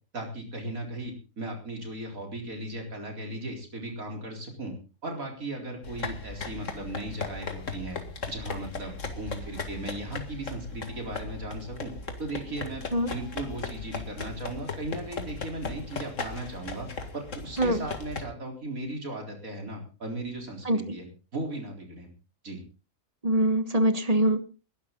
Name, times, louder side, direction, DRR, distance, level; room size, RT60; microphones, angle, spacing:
voice 1, 0.1-4.7 5.0-8.0 8.3-11.9 12.2-16.9 17.1-21.1 21.3-22.1 22.4-22.6, right 2 dB, 75° right, 2 dB, 4.5 m, -37 dB
sound 1, 5.8-18.2, left 4 dB, 60° left, 2.3 m, -37 dB
voice 2, 23.2-24.4, right 1 dB, 30° right, 11 dB, 1.4 m, -23 dB
21.0 x 12.0 x 3.9 m, 0.34 s
omnidirectional pair, 1.5 m